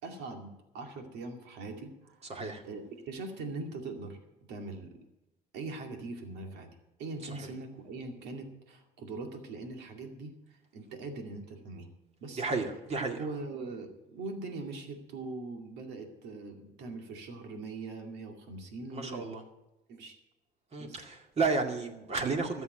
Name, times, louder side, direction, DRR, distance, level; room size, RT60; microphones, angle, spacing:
voice 1, 0.0-2.3 2.6-4.2 4.5-5.0 5.5-11.9 12.2-12.4 13.2-19.3 19.9-20.2 20.8-21.0, right 3 dB, 85° right, 4 dB, 2.3 m, -41 dB
voice 2, 2.3-2.6 7.3-7.5 12.4-13.2 18.9-19.4 20.7-22.6, right 4 dB, 40° right, 4 dB, 2.2 m, -32 dB
13.5 x 7.2 x 9.1 m, 0.98 s
cardioid pair, 110°, 17 cm